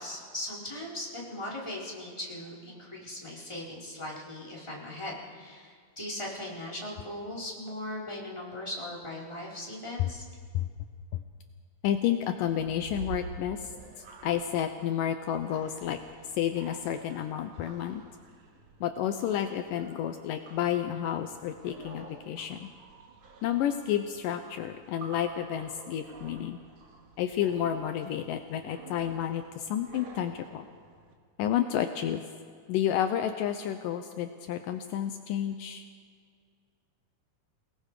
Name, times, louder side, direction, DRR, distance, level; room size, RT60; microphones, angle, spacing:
voice 1, 0.0-10.2, left 1 dB, 5° left, -5 dB, 4.1 m, -39 dB
voice 2, 11.8-13.6 14.2-16.0 16.4-18.0 18.8-22.7 23.4-26.6 27.2-30.7 31.4-32.2 32.7-35.8, left 10 dB, 85° left, 7 dB, 1.9 m, -30 dB
sound 1, 12.4-31.1, right 5 dB, 55° right, 2.9 m, -49 dB
29.0 x 19.0 x 4.9 m, 2.1 s
omnidirectional pair, 4.8 m